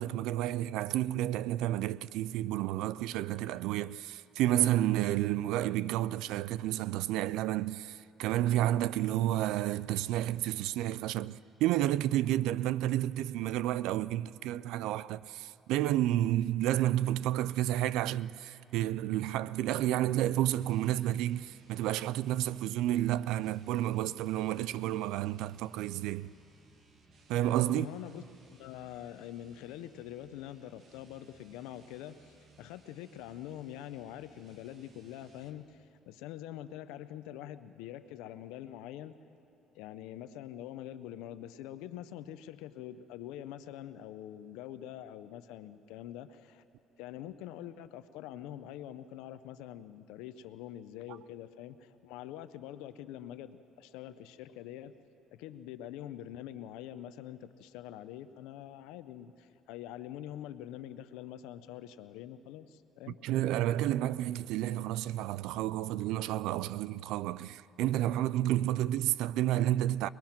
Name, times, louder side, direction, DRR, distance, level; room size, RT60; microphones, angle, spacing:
voice 1, 0.0-26.3 27.3-27.9 63.2-70.1, right 13 dB, 80° right, 0.4 m, -30 dB
sound 1, 20.5-35.7, right 3 dB, 45° right, 2.1 m, -62 dB
voice 2, 27.7-28.2 28.5-39.2 39.7-46.6 47.0-55.0 55.3-63.2, left 12 dB, 85° left, 0.8 m, -45 dB
23.0 x 21.0 x 5.9 m
cardioid pair, 95°, 0 cm